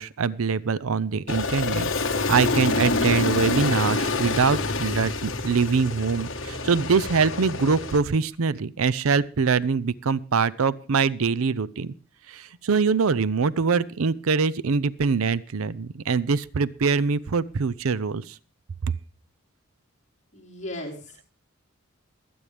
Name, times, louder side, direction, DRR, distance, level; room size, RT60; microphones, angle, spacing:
voice 1, 0.0-11.9 12.3-18.3, right 5 dB, 80° right, 18 dB, 0.6 m, -24 dB
Aircraft, 1.3-8.0, left 3 dB, 60° left, 1.3 m, -27 dB
voice 2, 20.3-21.2, left 1 dB, 35° left, -4 dB, 4.7 m, -36 dB
23.0 x 8.8 x 3.4 m, 0.36 s
head